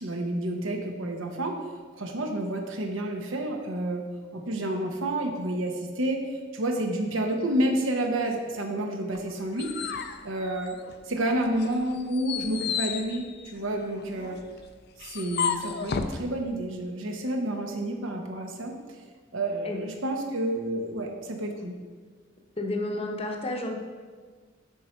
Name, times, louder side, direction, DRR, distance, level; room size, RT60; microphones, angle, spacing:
voice 1, 0.0-1.6 2.0-4.0 4.3-6.2 6.5-10.0 10.2-10.8 11.0-14.4 15.0-18.8 19.3-21.7, right 1 dB, 70° right, 3 dB, 0.9 m, -29 dB
sound 1, 9.1-11.1 11.5-16.2, left 7 dB, 55° left, 0.4 m, -33 dB
voice 2, 22.6-23.8, left 1 dB, 30° left, 2 dB, 0.8 m, -31 dB
7.5 x 5.2 x 4.4 m, 1.5 s
head